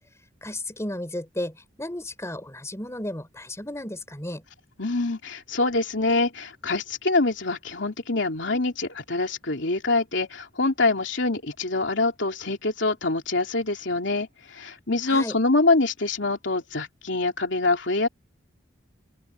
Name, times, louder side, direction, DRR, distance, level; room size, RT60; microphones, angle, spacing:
voice 1, 0.4-4.4 15.1-15.4, left 1 dB, 15° left, 4.2 m, -34 dB
voice 2, 4.8-18.1, left 3 dB, 70° left, 3.2 m, -25 dB
open air
head